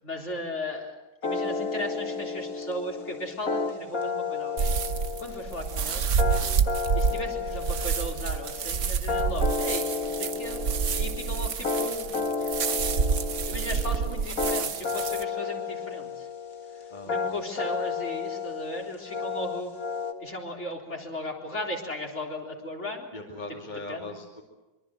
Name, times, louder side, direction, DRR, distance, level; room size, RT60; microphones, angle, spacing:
voice 1, 0.0-1.0 1.2-4.8 5.2-6.1 6.9-10.6 11.0-12.7 13.5-16.3 17.0-19.7 20.2-23.1 23.9-24.1, left 1 dB, 50° left, 0 dB, 4.2 m, -36 dB
sound 1, 1.2-20.1, left 5 dB, 70° left, 2.2 m, -32 dB
sound 2, 4.6-15.2, right 6 dB, 60° right, 1.3 m, -28 dB
voice 2, 23.1-24.4, left 2 dB, 30° left, -1 dB, 2.7 m, -40 dB
25.0 x 23.5 x 7.7 m, 1.1 s
omnidirectional pair, 1.6 m